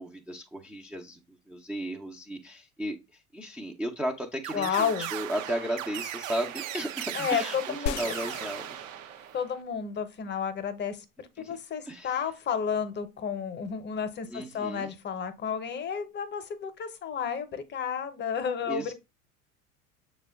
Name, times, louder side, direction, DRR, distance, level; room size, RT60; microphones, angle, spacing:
voice 1, 0.0-8.8 11.4-11.6 11.9-12.2 14.3-14.9 18.7-18.9, equal, 5° right, 0.4 m, -35 dB
sound 1, 4.4-9.6, right 12 dB, 65° right, 0.6 m, -37 dB
voice 2, 4.5-5.1 7.1-8.0 9.3-18.9, left 7 dB, 25° left, 0.7 m, -32 dB
sound 2, 7.9-9.8 10.1-10.2, left 9 dB, 65° left, 0.5 m, -38 dB
6.4 x 2.3 x 3.4 m
figure-of-eight pair, 80°, 43 cm